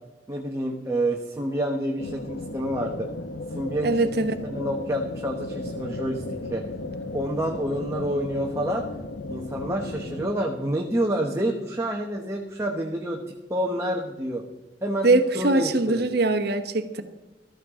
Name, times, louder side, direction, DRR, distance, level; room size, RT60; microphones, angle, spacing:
voice 1, 0.3-3.1 3.5-6.2 6.5-6.7 7.1-8.9 9.3-13.2 13.5-14.4 14.8-15.1 15.3-16.0, right 1 dB, 15° right, 0 dB, 1.1 m, -28 dB
sound 1, 2.0-10.3, left 2 dB, 70° left, 0.8 m, -35 dB
voice 2, 3.8-4.3 15.0-17.0, right 2 dB, 60° right, 8 dB, 1.2 m, -22 dB
14.5 x 13.0 x 3.7 m, 1.1 s
head